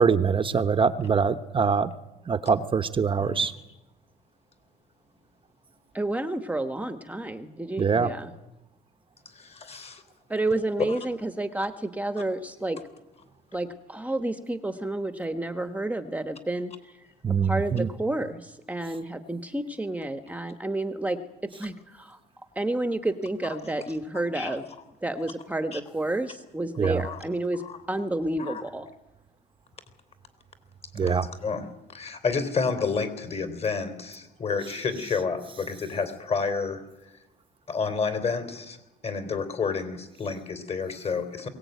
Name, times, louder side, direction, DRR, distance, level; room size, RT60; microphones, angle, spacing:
voice 1, 0.0-1.9 2.3-3.5 7.8-8.1 17.2-17.9 26.8-27.0 30.9-31.3, right 6 dB, 30° right, 9 dB, 1.0 m, -23 dB
voice 2, 5.9-8.3 10.3-12.8 13.5-17.0 17.4-22.2 22.5-24.6 25.0-27.6 27.9-28.9, right 2 dB, 10° right, 9 dB, 1.2 m, -30 dB
voice 3, 9.3-10.0 10.9-11.0 24.3-24.6 25.7-25.8 27.0-27.2 27.6-27.8 28.4-28.6 30.9-36.8 37.7-38.8 39.0-41.5, left 5 dB, 40° left, 9 dB, 3.7 m, -30 dB
22.0 x 17.5 x 9.4 m, 0.99 s
cardioid pair, 110°, 17 cm